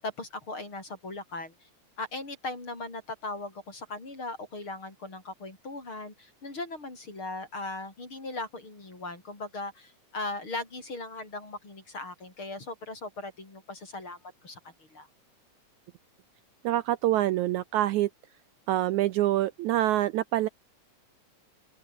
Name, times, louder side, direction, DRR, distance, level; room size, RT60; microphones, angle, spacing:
voice 1, 0.0-1.7 2.0-15.1, left 2 dB, 35° left, 7.6 m, -38 dB
voice 2, 16.6-18.1 18.7-20.5, right 14 dB, 75° right, 1.9 m, -25 dB
open air
omnidirectional pair, 3.8 m